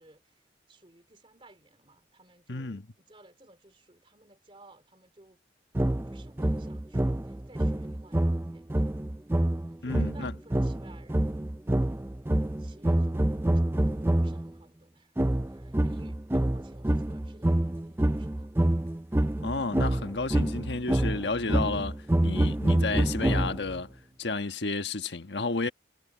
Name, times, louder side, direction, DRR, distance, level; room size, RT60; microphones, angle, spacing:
voice 1, 0.0-5.4 6.1-8.9 9.7-11.5 12.3-13.6 14.1-15.1 15.4-18.5, right 2 dB, 30° right, 3.4 m, -57 dB
voice 2, 2.5-2.8 9.8-10.3 19.4-25.7, left 3 dB, 85° left, 1.4 m, -32 dB
sound 1, 5.8-14.5 15.2-23.8, right 1 dB, 15° right, 0.4 m, -27 dB
head